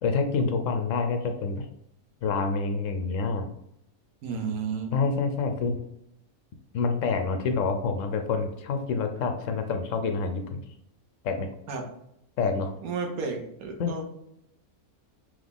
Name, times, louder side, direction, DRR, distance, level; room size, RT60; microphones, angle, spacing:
voice 1, 0.0-1.7 2.2-3.5 4.9-5.8 6.7-10.6 11.2-11.5 12.4-12.7 13.8-14.0, left 4 dB, 70° left, 6 dB, 0.8 m, -27 dB
voice 2, 4.2-4.9 11.7-11.8 12.8-14.0, right 5 dB, 75° right, 3 dB, 1.2 m, -32 dB
3.9 x 3.0 x 3.5 m, 0.78 s
omnidirectional pair, 1.6 m